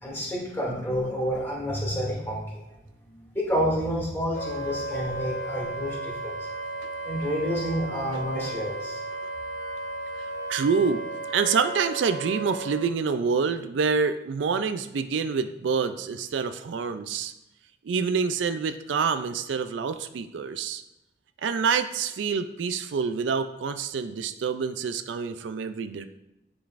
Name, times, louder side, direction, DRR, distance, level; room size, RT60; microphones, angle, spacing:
voice 1, 0.0-2.6 3.1-6.4 7.0-9.0, equal, 15° left, -5 dB, 2.4 m, -29 dB
Wind instrument woodwind instrument, 4.3-12.8, right 1 dB, 85° left, 2.6 m, -34 dB
voice 2, 10.5-11.0 11.3-17.3 17.8-20.8 21.4-26.1, right 5 dB, 80° right, 10 dB, 0.4 m, -27 dB
10.0 x 5.1 x 2.5 m, 0.93 s
head